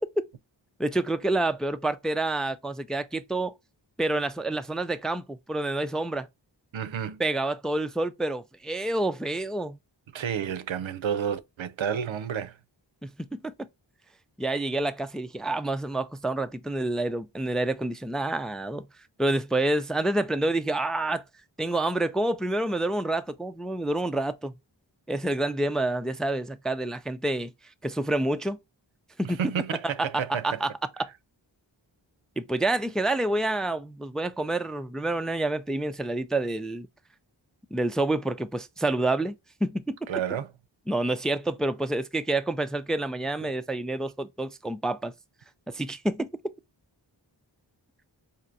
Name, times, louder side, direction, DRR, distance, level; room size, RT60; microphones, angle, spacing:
voice 1, 0.8-3.5 4.0-6.3 7.2-9.8 13.0-13.7 14.4-18.9 19.2-21.2 21.6-24.5 25.1-27.5 27.8-28.6 29.2-29.4 30.0-30.7 31.0-31.1 32.4-36.9 37.7-40.0 40.9-45.1 45.7-46.3, right 2 dB, ahead, 0.3 m, -28 dB
voice 2, 6.7-7.2 10.1-12.5 29.2-30.6 40.1-40.5 43.4-43.5, right 8 dB, 90° right, 0.6 m, -30 dB
4.4 x 2.8 x 2.5 m
wide cardioid pair, 45°, 45 cm